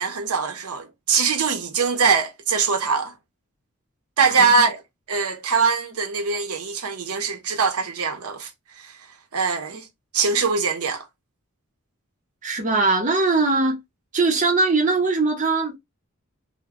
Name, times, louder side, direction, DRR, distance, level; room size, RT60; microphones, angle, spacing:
voice 1, 0.0-3.1 4.2-4.8 5.1-8.5 8.8-8.9 9.3-9.9 10.1-11.1, right 5 dB, 90° right, 0.7 m, -22 dB
voice 2, 12.4-13.8 14.1-15.8, right 3 dB, 35° right, 0.7 m, -21 dB
2.2 x 2.1 x 3.5 m
head